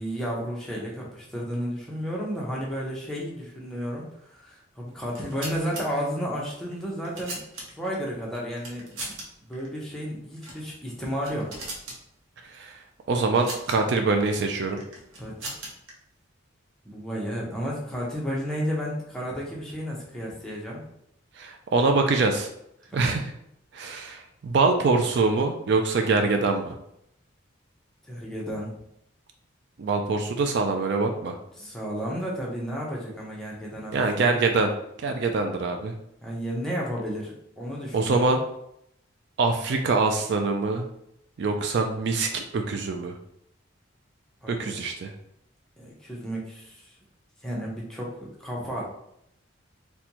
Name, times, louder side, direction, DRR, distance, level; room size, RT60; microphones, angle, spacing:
voice 1, 0.0-7.4 7.7-9.1 9.5-11.5 15.2-15.3 16.8-20.8 22.9-23.2 28.1-28.7 31.6-34.4 36.2-38.4 44.4-44.7 45.8-46.9 47.4-48.9, equal, 5° left, -5 dB, 0.7 m, -32 dB
sound 1, 5.0-5.8 6.7-7.9 8.6-9.2 9.5-9.7 10.4-10.6 11.0-12.0 13.1-13.8 14.8-15.9, right 2 dB, 80° right, 0.9 m, -38 dB
voice 2, 13.1-14.8 21.4-22.5 22.9-23.3 23.7-26.8 29.8-31.4 33.9-34.7 35.0-35.9 37.9-38.4 39.4-40.9 41.4-43.2 44.5-45.1, right 3 dB, 55° right, 4 dB, 0.3 m, -24 dB
4.2 x 2.2 x 2.8 m, 0.77 s
head